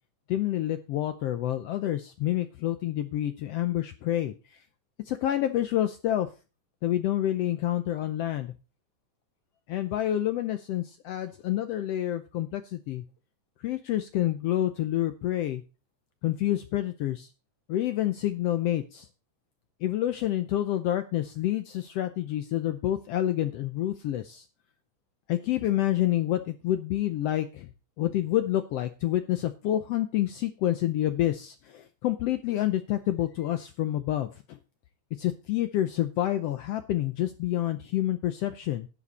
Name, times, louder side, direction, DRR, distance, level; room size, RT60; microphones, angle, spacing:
voice 1, 0.3-4.6 5.1-6.3 6.8-8.5 9.7-13.0 13.6-15.6 16.2-17.3 17.7-19.1 19.8-24.4 25.3-27.7 28.0-34.6 35.2-38.9, left 13 dB, 80° left, 10 dB, 1.4 m, -28 dB
11.0 x 8.7 x 4.1 m, 0.32 s
omnidirectional pair, 3.6 m